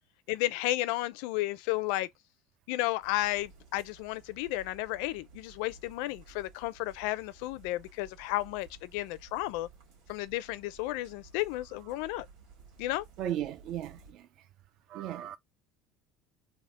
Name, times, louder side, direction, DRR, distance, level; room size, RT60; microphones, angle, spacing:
voice 1, 0.3-2.1 2.7-9.7 10.1-12.3 12.8-13.0, left 17 dB, 70° left, 0.4 m, -33 dB
sound 1, 3.0-14.1, right 4 dB, 75° right, 1.5 m, -56 dB
voice 2, 13.2-14.5 14.9-15.4, right 11 dB, 45° right, 0.3 m, -36 dB
3.5 x 2.0 x 3.6 m
cardioid pair, 165°, 0 cm